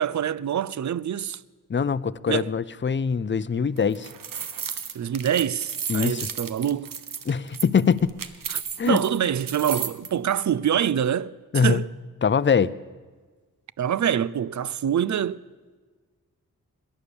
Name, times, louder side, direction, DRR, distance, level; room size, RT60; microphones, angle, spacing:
voice 1, 0.0-1.4 2.3-2.5 4.9-6.9 8.9-11.9 13.8-15.4, right 9 dB, 55° right, 0.5 m, -25 dB
voice 2, 1.7-4.1 5.9-6.3 7.3-8.1 8.8-9.0 11.5-11.8 12.2-12.7, left 6 dB, 35° left, 0.5 m, -23 dB
sound 1, 3.8-10.1, right 7 dB, 70° right, 1.0 m, -33 dB
18.0 x 11.0 x 7.2 m
cardioid pair, 60°, 34 cm